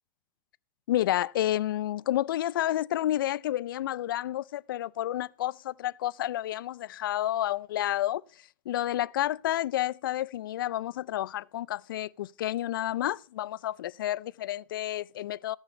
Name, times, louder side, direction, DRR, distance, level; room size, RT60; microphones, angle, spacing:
voice 1, 0.9-8.2 8.7-15.6, left 13 dB, 85° left, 0.4 m, -30 dB
15.5 x 6.4 x 4.4 m
supercardioid pair, 140°, 11 cm